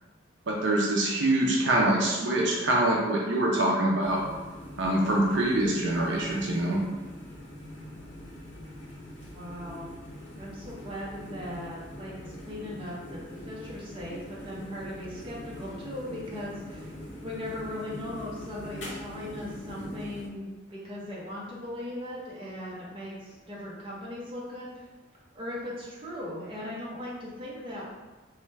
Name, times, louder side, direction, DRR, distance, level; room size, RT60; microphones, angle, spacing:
voice 1, 0.5-4.2 4.8-6.8, right 1 dB, 60° right, -3 dB, 0.5 m, -25 dB
sound 1, 4.0-20.3, equal, 60° left, 0.8 m, -43 dB
voice 2, 9.4-9.9 10.4-16.9 17.2-24.9 25.3-27.9, left 1 dB, 25° right, -5 dB, 0.7 m, -38 dB
3.1 x 2.3 x 3.2 m, 1.2 s
head